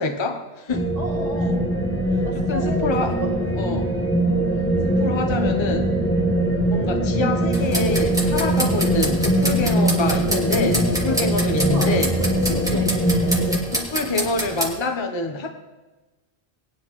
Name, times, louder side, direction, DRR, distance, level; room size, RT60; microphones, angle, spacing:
voice 1, 0.0-0.9 2.5-3.2 3.6-3.9 4.8-5.9 6.7-12.1 12.7-12.9 13.7-15.5, left 2 dB, 30° left, 4 dB, 0.8 m, -26 dB
sound 1, 0.7-13.6, right 1 dB, 15° left, 1.2 m, -22 dB
voice 2, 1.0-1.6 2.2-3.3 4.4-4.7 6.4-6.7 11.6-13.5 13.8-13.9, right 1 dB, 35° right, -8 dB, 2.6 m, -34 dB
sound 2, 7.5-14.7, right 1 dB, 5° right, 1.9 m, -28 dB
19.5 x 10.0 x 3.1 m, 1.2 s
omnidirectional pair, 1.0 m